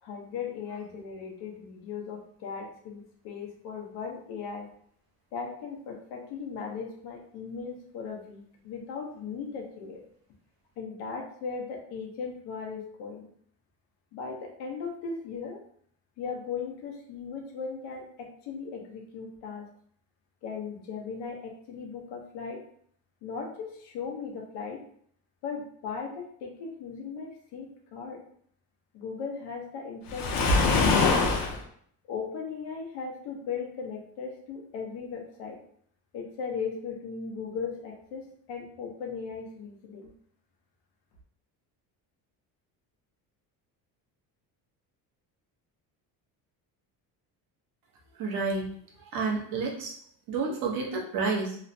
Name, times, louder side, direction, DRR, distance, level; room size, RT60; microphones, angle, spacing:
voice 1, 0.0-4.7 5.3-10.0 10.8-13.3 14.1-15.6 16.2-19.7 20.4-22.6 23.2-24.8 25.4-28.2 28.9-31.3 32.1-35.6 36.1-40.1, left 5 dB, 90° left, 0 dB, 0.8 m, -37 dB
Waves surf, 30.1-31.6, left 3 dB, 60° left, 0.6 m, -23 dB
voice 2, 48.2-48.7 49.1-49.9 50.3-51.6, right 4 dB, 60° right, -1 dB, 0.8 m, -29 dB
3.1 x 2.0 x 2.6 m, 0.62 s
cardioid pair, 125°, 40 cm